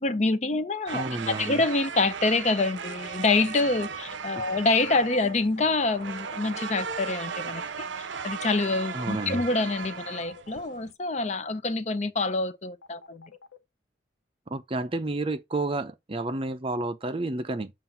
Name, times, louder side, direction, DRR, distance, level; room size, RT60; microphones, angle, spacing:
voice 1, 0.0-13.3, left 3 dB, 35° left, 0.6 m, -26 dB
voice 2, 0.9-1.6 4.3-4.5 8.9-9.4 14.5-17.7, right 2 dB, 30° right, 0.5 m, -31 dB
sound 1, 0.9-10.9, right 5 dB, 75° right, 0.6 m, -37 dB
sound 2, 3.8-4.6 5.6-6.3 8.3-9.1 10.1-10.8 12.8-13.6, left 6 dB, 80° left, 0.9 m, -49 dB
7.4 x 2.5 x 5.4 m
head